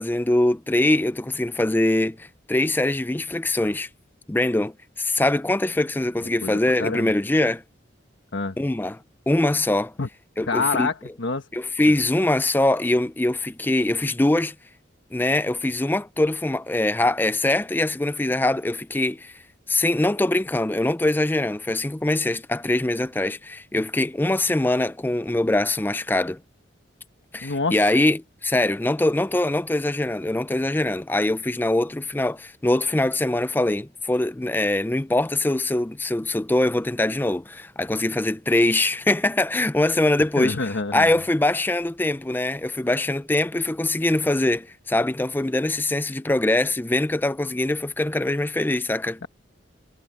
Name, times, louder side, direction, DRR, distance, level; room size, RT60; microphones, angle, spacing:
voice 1, 0.0-3.9 4.3-7.6 8.6-9.0 9.3-9.9 10.4-10.9 11.5-14.5 15.1-19.3 19.7-26.4 27.3-49.2, left 1 dB, 10° left, 0.4 m, -23 dB
voice 2, 6.4-7.1 8.3-8.6 10.0-10.1 10.5-11.5 27.4-27.9 40.4-41.1 49.2-49.3, left 3 dB, 80° left, 1.3 m, -27 dB
head